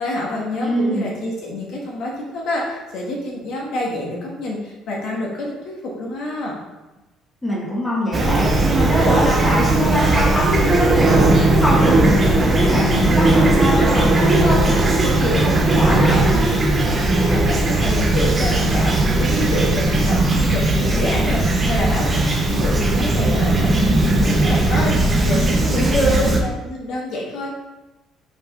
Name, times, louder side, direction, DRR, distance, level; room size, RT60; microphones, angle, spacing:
voice 1, 0.0-6.6 17.1-27.5, left 1 dB, 55° left, -3 dB, 1.4 m, -27 dB
voice 2, 0.6-1.1 7.4-16.5 25.7-26.3, equal, 10° left, -6 dB, 1.5 m, -22 dB
Fowl / Chirp tweet, 8.1-26.4, right 2 dB, 20° right, 0.7 m, -17 dB
5.1 x 4.9 x 4.1 m, 1.1 s
cardioid pair, 170°, 0 cm